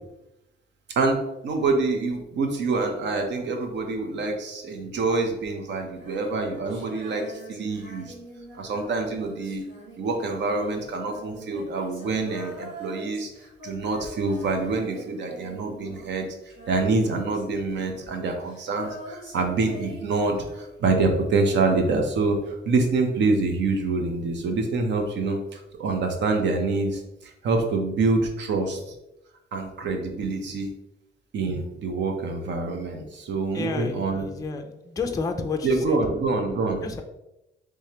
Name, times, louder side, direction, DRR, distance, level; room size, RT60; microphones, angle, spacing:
voice 1, 1.0-8.1 8.6-9.6 10.0-13.3 13.6-16.3 16.7-28.8 29.5-30.7 31.3-34.3 35.6-36.9, right 3 dB, 65° right, 3 dB, 0.8 m, -26 dB
Female singing, 5.9-21.3 22.8-22.9, right 1 dB, 85° right, 1.4 m, -44 dB
voice 2, 33.5-36.1 36.8-37.0, left 4 dB, 20° left, 5 dB, 0.4 m, -31 dB
3.4 x 3.2 x 2.8 m, 0.91 s
cardioid pair, 90°, 20 cm